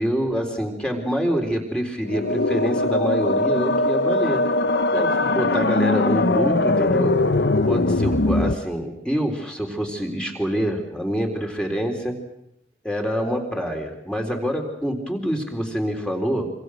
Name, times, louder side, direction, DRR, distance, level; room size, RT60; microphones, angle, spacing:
voice 1, 0.0-4.4 4.9-7.2 7.7-12.2 12.8-16.5, equal, 5° left, 2 dB, 4.0 m, -26 dB
sound 1, 2.0-8.5, left 2 dB, 70° left, 1.0 m, -21 dB
26.5 x 26.0 x 6.4 m, 0.80 s
head